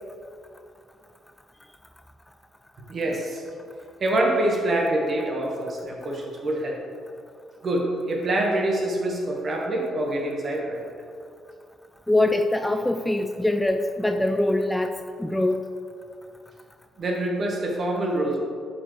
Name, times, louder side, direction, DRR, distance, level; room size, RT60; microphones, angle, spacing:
voice 1, 2.9-3.4 4.0-6.8 7.6-10.8 17.0-18.4, right 1 dB, 45° right, 0 dB, 1.5 m, -25 dB
voice 2, 12.1-14.9 15.2-15.6, left 1 dB, 10° left, 6 dB, 0.4 m, -23 dB
11.0 x 5.4 x 3.3 m, 2.4 s
figure-of-eight pair, 40°, 0 cm